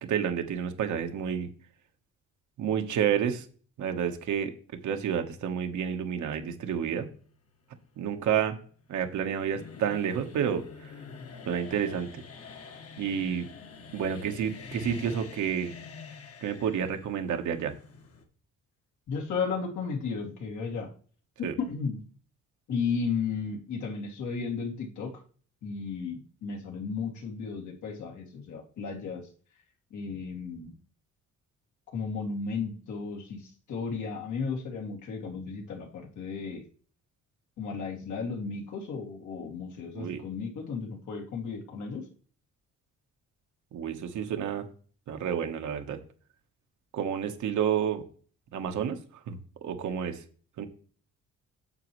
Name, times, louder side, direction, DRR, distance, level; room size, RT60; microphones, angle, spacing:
voice 1, 0.0-1.5 2.6-3.4 3.8-4.5 4.8-7.1 8.0-8.6 8.9-10.9 11.5-12.2 13.0-13.5 13.9-15.7 16.4-17.7 21.4-21.5 39.9-40.2 43.7-44.7 45.1-46.0 46.9-48.0 48.5-50.2 50.6-50.7, right 8 dB, 75° right, 6 dB, 1.3 m, -30 dB
sound 1, 7.1-18.2, left 5 dB, 50° left, 1.6 m, -46 dB
voice 2, 19.1-20.9 21.7-22.0 22.7-25.1 25.6-29.2 29.9-30.7 31.9-36.6 37.6-42.0, left 5 dB, 75° left, 1 dB, 2.4 m, -34 dB
9.4 x 6.9 x 3.1 m, 0.43 s
cardioid pair, 90°, 30 cm